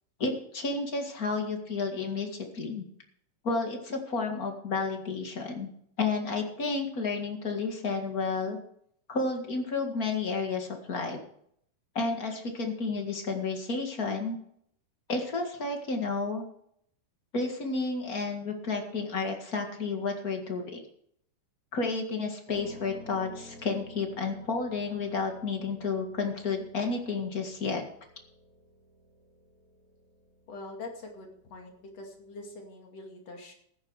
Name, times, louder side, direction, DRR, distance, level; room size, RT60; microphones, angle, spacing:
voice 1, 0.2-2.8 3.4-5.7 6.0-8.6 9.1-11.2 12.0-14.4 15.1-16.5 17.3-20.8 21.7-27.8, left 4 dB, 35° left, 3 dB, 1.7 m, -31 dB
Piano, 22.5-32.6, left 1 dB, 45° right, 4.0 m, -53 dB
voice 2, 30.5-33.5, left 2 dB, 50° left, 2 dB, 3.4 m, -44 dB
14.5 x 11.0 x 4.8 m, 0.68 s
omnidirectional pair, 4.0 m